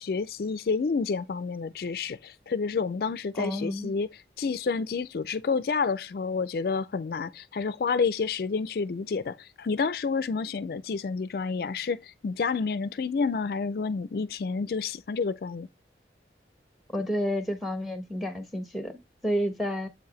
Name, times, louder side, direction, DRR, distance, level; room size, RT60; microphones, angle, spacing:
voice 1, 0.0-15.7, left 5 dB, 55° left, 0.4 m, -29 dB
voice 2, 3.4-3.9 16.9-19.9, equal, ahead, 1.1 m, -30 dB
7.8 x 4.6 x 3.1 m
head